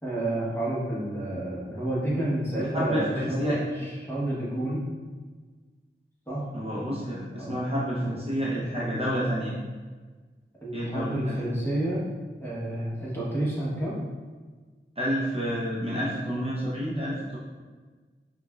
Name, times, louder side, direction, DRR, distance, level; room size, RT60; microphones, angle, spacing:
voice 1, 0.0-3.5 3.8-4.8 6.3-6.4 7.4-7.6 8.0-8.2 8.5-8.9 10.6-12.0 12.4-14.0, right 1 dB, 10° left, -7 dB, 1.2 m, -30 dB
voice 2, 2.7-3.9 6.5-9.5 10.7-11.4 15.0-17.4, equal, 30° right, -7 dB, 0.7 m, -29 dB
4.9 x 2.3 x 2.3 m, 1.4 s
wide cardioid pair, 70°, 21 cm